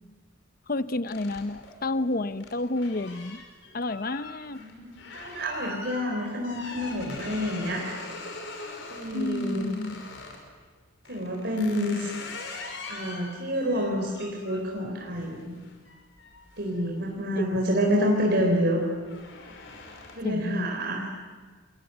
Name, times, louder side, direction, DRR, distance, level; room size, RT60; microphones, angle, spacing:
voice 1, 0.7-3.4 3.7-4.6 9.1-10.0 11.7-12.1 17.4-17.5 20.2-20.7, left 2 dB, 45° left, 13 dB, 0.8 m, -30 dB
door wood open close very squeaky wobbly, 1.1-10.4 11.0-17.5 17.9-18.3 18.6-20.4, left 3 dB, 65° left, 5.9 m, -43 dB
voice 2, 4.6-7.8 8.9-9.7 11.1-12.1 12.9-15.6 16.6-18.8 20.1-21.1, equal, 55° right, 0 dB, 4.1 m, -28 dB
28.0 x 22.5 x 9.3 m, 1.4 s
head